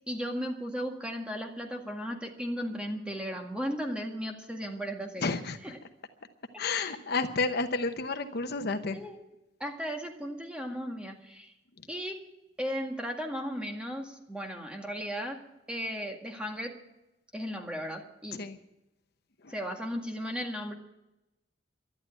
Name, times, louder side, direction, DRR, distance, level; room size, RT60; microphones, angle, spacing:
voice 1, 0.1-5.4 5.6-5.8 6.8-7.0 8.9-9.2 9.6-11.5 11.9-12.2 12.6-15.4 15.7-16.8 17.3-18.4 19.5-20.7, equal, 5° right, 2 dB, 2.0 m, -36 dB
voice 2, 5.2-5.6 6.6-9.0 18.3-18.6 19.4-19.5, left 3 dB, 60° left, 8 dB, 0.9 m, -31 dB
12.0 x 11.0 x 8.7 m, 0.90 s
head